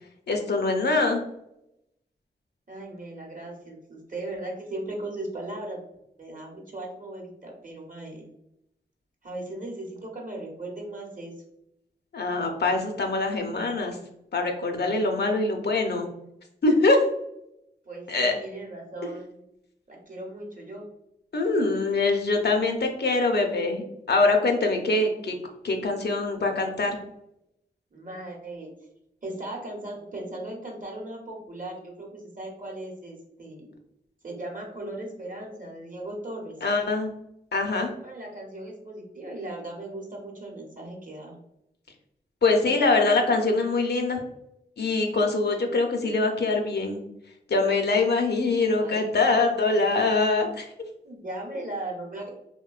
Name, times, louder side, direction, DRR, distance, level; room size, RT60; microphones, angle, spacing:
voice 1, 0.3-1.2 12.1-14.0 14.3-16.1 16.6-17.0 18.1-18.3 21.3-23.8 24.1-25.3 25.6-27.0 36.6-37.1 37.5-37.9 42.4-44.2 44.8-47.0 47.5-50.7, left 3 dB, 65° left, 4 dB, 0.5 m, -23 dB
voice 2, 2.7-5.8 6.2-8.2 9.2-11.3 17.9-19.4 19.9-20.8 27.9-28.7 29.2-33.7 34.2-36.5 38.0-41.4 48.7-49.6 51.0-52.3, right 1 dB, 45° right, 0 dB, 0.9 m, -37 dB
2.9 x 2.1 x 2.3 m, 0.81 s
cardioid pair, 40°, 18 cm